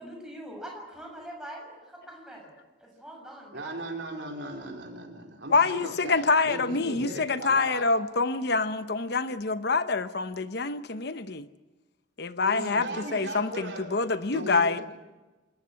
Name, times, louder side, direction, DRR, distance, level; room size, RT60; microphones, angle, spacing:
voice 1, 0.0-3.7, right 1 dB, 5° right, 6.9 m, -43 dB
voice 2, 3.5-7.9 12.4-13.9 14.2-14.8, right 2 dB, 70° right, 4.4 m, -37 dB
voice 3, 5.5-11.5 12.2-14.8, left 4 dB, 55° left, 0.9 m, -26 dB
27.5 x 14.0 x 9.7 m
head